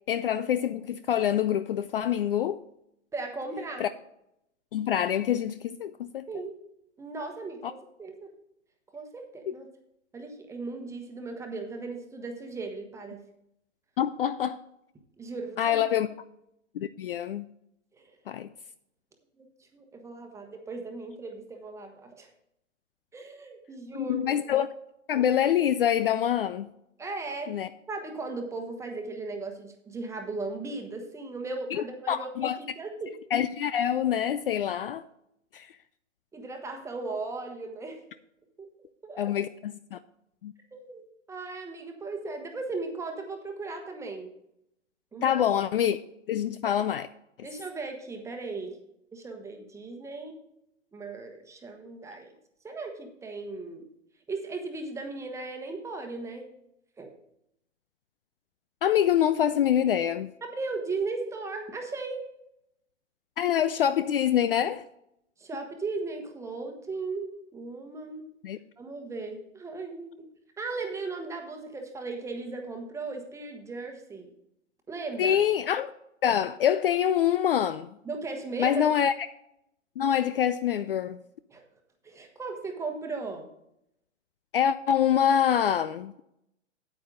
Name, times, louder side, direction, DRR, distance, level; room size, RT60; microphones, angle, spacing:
voice 1, 0.1-2.6 3.8-3.9 4.7-6.3 7.6-7.7 9.5-9.6 14.0-14.6 15.6-16.1 16.7-17.5 18.3-18.5 23.9-24.7 25.1-26.7 27.5-27.7 31.7-32.6 33.3-35.0 35.5-35.7 39.2-40.0 40.4-40.5 45.2-46.0 46.3-47.1 58.8-60.3 63.4-64.8 68.4-68.6 75.2-75.9 76.2-77.9 78.6-79.1 80.0-81.2 84.5-86.1, left 9 dB, 50° left, 0.4 m, -25 dB
voice 2, 3.1-3.9 6.3-6.6 7.0-8.3 8.9-9.7 10.1-13.3 15.2-15.8 17.9-18.1 19.4-22.3 23.1-24.3 27.0-32.3 32.6-33.1 36.3-38.1 38.6-38.7 39.0-39.3 40.7-44.3 45.1-45.3 47.4-48.8 49.1-50.4 50.9-52.3 52.6-53.9 54.3-56.5 57.0-57.1 60.4-62.3 65.4-68.3 68.8-70.3 70.6-74.3 74.9-75.4 78.0-78.8 81.5-81.6 82.0-83.5, right 3 dB, 10° right, 1.1 m, -37 dB
9.0 x 8.5 x 3.8 m
figure-of-eight pair, 125°, 37 cm